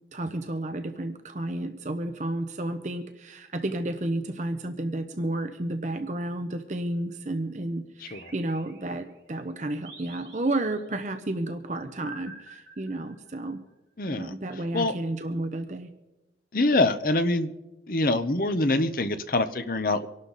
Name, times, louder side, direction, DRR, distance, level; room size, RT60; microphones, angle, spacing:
voice 1, 0.1-13.6 14.1-15.9, right 1 dB, 45° right, 8 dB, 0.8 m, -31 dB
sound 1, 8.1-9.2 9.9-11.0 12.1-13.5, right 4 dB, 80° right, 5.3 m, -48 dB
voice 2, 14.0-14.3 14.7-14.9 16.5-17.5 17.9-20.1, left 2 dB, 50° left, 10 dB, 0.8 m, -24 dB
24.5 x 12.0 x 4.1 m, 1.0 s
head